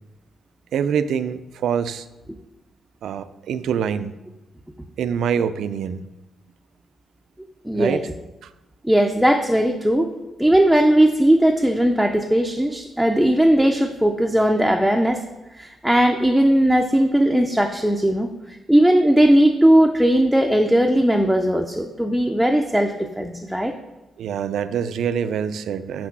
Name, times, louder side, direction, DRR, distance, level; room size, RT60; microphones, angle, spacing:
voice 1, 0.7-2.0 3.0-4.1 5.0-6.0 7.7-8.1 8.4-8.5 24.2-26.1, right 7 dB, 75° right, 13 dB, 0.4 m, -25 dB
voice 2, 7.6-8.0 8.8-10.1 10.4-15.2 15.5-23.7, right 1 dB, ahead, 2 dB, 0.5 m, -18 dB
6.2 x 6.1 x 5.9 m, 1.0 s
wide cardioid pair, 155°, 0 cm